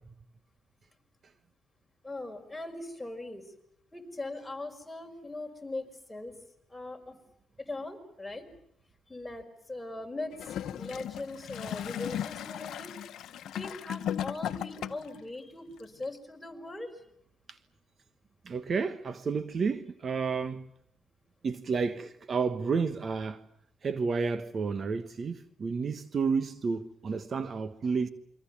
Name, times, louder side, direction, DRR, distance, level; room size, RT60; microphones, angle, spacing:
voice 1, 2.0-3.5 3.9-6.4 6.7-7.2 7.6-8.5 9.1-13.0 13.5-17.0, left 2 dB, 10° left, 5.6 m, -40 dB
Gurgling / Toilet flush, 10.3-15.2 16.0-16.1, left 10 dB, 75° left, 1.0 m, -36 dB
voice 2, 18.4-20.6 21.4-23.4 23.8-28.1, right 5 dB, 45° right, 1.3 m, -31 dB
28.0 x 24.5 x 7.2 m
cardioid pair, 90°, 0 cm